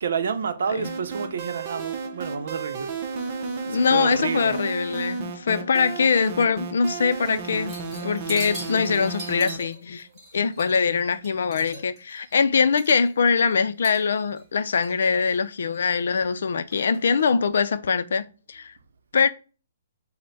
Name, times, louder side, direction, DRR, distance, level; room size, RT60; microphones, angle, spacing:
voice 1, 0.0-3.2 3.6-4.6 5.5-5.7 7.1-7.3 7.9-8.2 9.6-9.8 10.7-10.9 11.7-11.9, right 6 dB, 65° right, 0.6 m, -31 dB
sound 1, 0.8-9.6, right 4 dB, 35° right, 0.7 m, -33 dB
voice 2, 3.7-7.7 8.0-10.1 10.3-18.7 19.1-19.3, left 5 dB, 70° left, 0.4 m, -23 dB
sound 2, 7.7-10.9 11.2-13.3 13.8-14.4 14.8-15.4 15.7-16.3 16.7-17.3, right 1 dB, 10° right, 1.5 m, -41 dB
5.4 x 2.1 x 4.0 m
hypercardioid pair, 155°, 0 cm